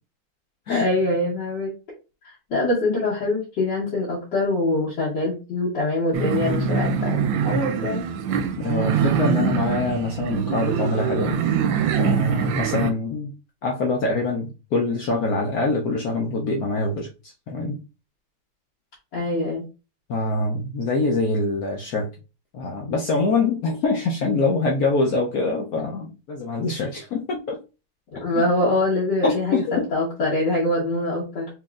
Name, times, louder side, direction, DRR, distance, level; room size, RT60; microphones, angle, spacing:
voice 1, 0.7-1.7 2.2-8.0 19.1-19.6 28.1-31.5, left 2 dB, 60° left, -6 dB, 1.8 m, -24 dB
sound 1, 6.1-12.9, right 7 dB, 75° right, 1.2 m, -24 dB
voice 2, 8.6-11.4 12.0-13.3 13.6-17.1 17.5-17.8 20.1-22.1 22.5-27.6 29.2-29.9, left 3 dB, 80° left, -1 dB, 0.8 m, -24 dB
4.4 x 3.0 x 2.4 m, 0.31 s
omnidirectional pair, 2.3 m